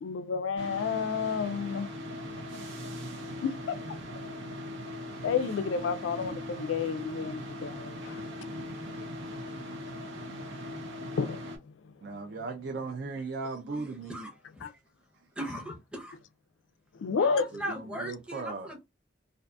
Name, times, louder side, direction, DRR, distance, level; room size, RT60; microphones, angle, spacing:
voice 1, 0.0-1.9 3.2-3.8 5.2-8.2 11.2-11.7 14.6-14.7 17.0-17.5, left 5 dB, 90° left, 0.4 m, -31 dB
sound 1, 0.6-11.6, left 1 dB, 85° right, 0.8 m, -40 dB
voice 2, 12.0-14.3 17.5-18.7, right 3 dB, 60° right, 0.4 m, -37 dB
voice 3, 13.7-14.3 14.6-14.7 15.4-16.2 17.1-18.8, equal, 5° right, 0.6 m, -39 dB
2.6 x 2.4 x 2.3 m
head